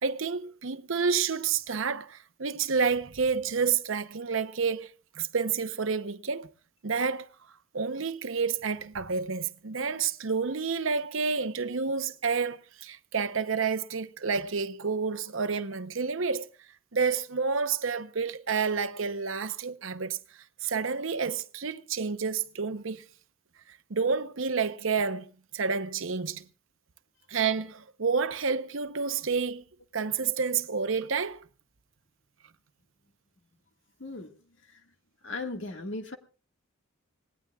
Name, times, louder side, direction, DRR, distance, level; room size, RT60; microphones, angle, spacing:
voice 1, 0.0-4.9 5.1-6.5 6.8-7.3 7.7-16.5 16.9-20.2 20.6-23.0 23.9-26.4 27.3-29.6 29.9-31.4, right 5 dB, 70° right, 0.8 m, -29 dB
voice 2, 34.0-34.9 35.2-36.2, left 2 dB, 60° left, 1.7 m, -38 dB
25.5 x 19.0 x 2.4 m
head